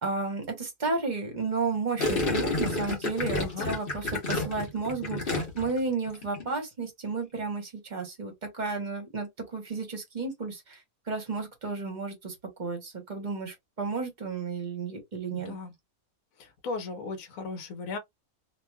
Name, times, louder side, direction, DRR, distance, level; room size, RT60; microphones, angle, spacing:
voice 1, 0.0-10.8 11.1-15.5, right 4 dB, 35° right, 1.0 m, -33 dB
Gurgling, 2.0-5.8 6.1-6.5, left 2 dB, 40° left, 1.1 m, -30 dB
voice 2, 3.4-3.7 15.3-15.7 16.4-18.0, left 4 dB, 70° left, 1.1 m, -36 dB
2.9 x 2.6 x 2.2 m
omnidirectional pair, 1.5 m